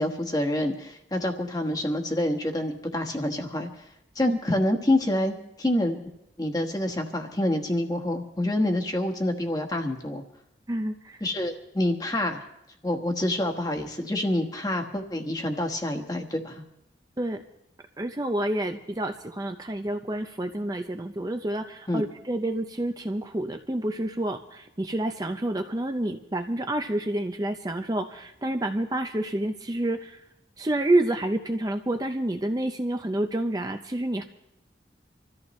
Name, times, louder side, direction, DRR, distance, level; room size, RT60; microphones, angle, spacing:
voice 1, 0.0-3.9 4.1-6.0 6.4-10.2 11.2-12.4 12.8-16.6 21.9-22.0, left 1 dB, 20° left, 4 dB, 1.4 m, -27 dB
voice 2, 10.7-11.2 17.2-17.4 18.0-30.2 30.6-34.2, right 1 dB, 20° right, 6 dB, 0.6 m, -28 dB
26.0 x 14.0 x 3.2 m, 0.83 s
head